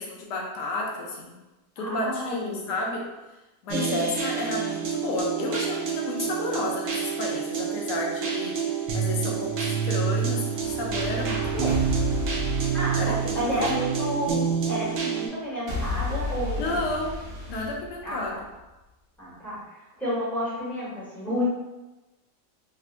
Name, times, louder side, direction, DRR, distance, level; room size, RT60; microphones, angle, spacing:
voice 1, 0.0-1.3 1.8-3.1 3.6-8.6 8.9-11.8 13.0-13.7 16.6-17.2 17.5-18.4, left 2 dB, 80° left, -1 dB, 1.2 m, -31 dB
voice 2, 1.8-2.7 3.7-4.0 12.7-16.9 18.0-18.4 19.2-21.4, equal, ahead, -10 dB, 0.8 m, -31 dB
sound 1, 3.7-15.3, right 7 dB, 70° right, 0.9 m, -28 dB
sound 2, 10.4-14.5 15.7-18.5, left 3 dB, 50° right, 1.2 m, -33 dB
3.4 x 2.1 x 2.4 m, 1.1 s
omnidirectional pair, 1.8 m